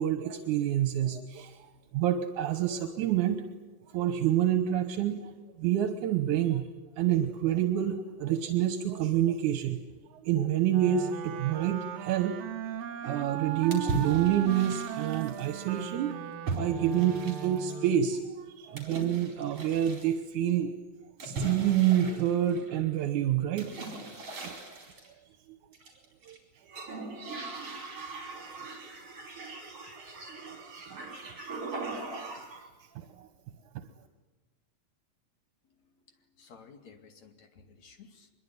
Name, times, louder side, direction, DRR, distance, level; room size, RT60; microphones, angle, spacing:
voice 1, 0.0-1.6 1.9-3.4 3.9-5.3 5.6-6.7 7.0-9.8 10.2-12.4 13.0-16.2 16.5-20.7 21.2-23.7 24.4-24.6 25.5-25.6 26.2-26.4 30.0-30.6 30.9-31.0 33.0-33.3, right 11 dB, 80° right, 7 dB, 2.6 m, -28 dB
Wind instrument woodwind instrument, 10.7-18.2, right 9 dB, 65° right, 2.0 m, -38 dB
sound 1, 13.7-15.5 16.5-17.7 18.8-20.1 21.2-22.9 23.6-25.1 25.7-26.4 26.7-32.7, right 2 dB, 50° right, 5.4 m, -39 dB
voice 2, 35.7-38.3, left 5 dB, 65° left, 5 dB, 3.6 m, -55 dB
23.5 x 22.5 x 9.6 m, 1.2 s
omnidirectional pair, 3.5 m